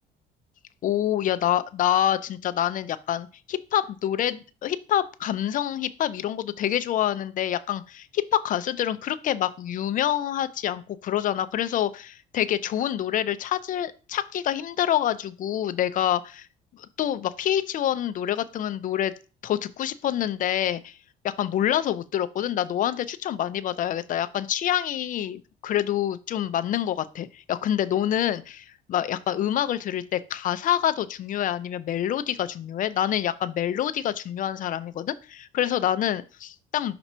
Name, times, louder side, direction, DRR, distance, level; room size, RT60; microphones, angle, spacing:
voice 1, 0.8-16.5 16.8-19.1 19.4-21.0 21.2-36.9, left 11 dB, 50° left, 13 dB, 0.5 m, -26 dB
6.0 x 2.9 x 5.4 m, 0.35 s
cardioid pair, 110°, 17 cm